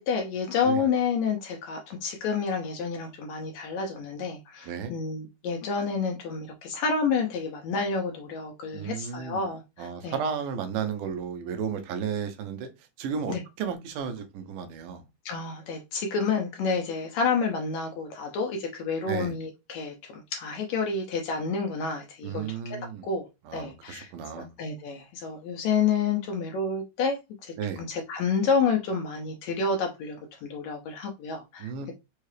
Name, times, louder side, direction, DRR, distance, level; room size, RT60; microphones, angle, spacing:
voice 1, 0.0-10.2 13.3-13.4 15.2-22.8 23.0-23.3 23.5-24.1 24.6-27.5 27.9-31.7, left 5 dB, 80° left, 1.6 m, -29 dB
voice 2, 8.7-9.4 9.8-12.7 13.0-15.0 19.1-19.3 22.2-23.1 23.4-24.5 27.6-27.9 31.6-31.9, right 7 dB, 80° right, 2.3 m, -33 dB
5.5 x 2.4 x 3.2 m
omnidirectional pair, 3.8 m